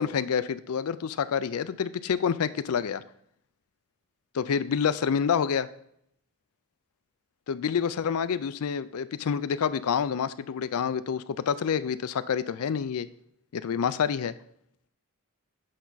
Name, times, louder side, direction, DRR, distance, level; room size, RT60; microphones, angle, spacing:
voice 1, 0.0-3.0 4.3-5.7 7.5-13.1 13.5-14.3, left 7 dB, 70° left, 14 dB, 0.4 m, -28 dB
8.5 x 5.6 x 4.0 m, 0.71 s
head